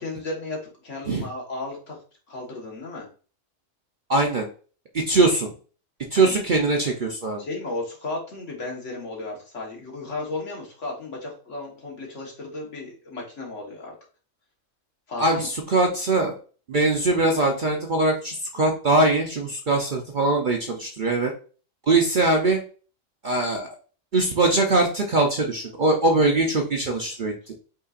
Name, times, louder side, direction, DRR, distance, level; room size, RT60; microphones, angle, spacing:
voice 1, 0.0-2.0 2.3-3.1 6.1-6.4 7.4-13.9 15.1-15.5, left 2 dB, 65° left, -1 dB, 1.7 m, -34 dB
voice 2, 4.1-4.5 4.9-5.5 6.1-7.4 15.2-16.4 16.7-21.3 21.9-22.6 23.2-23.7 24.1-27.5, right 2 dB, 50° right, 2 dB, 0.6 m, -22 dB
5.4 x 3.8 x 2.4 m, 0.39 s
omnidirectional pair, 1.4 m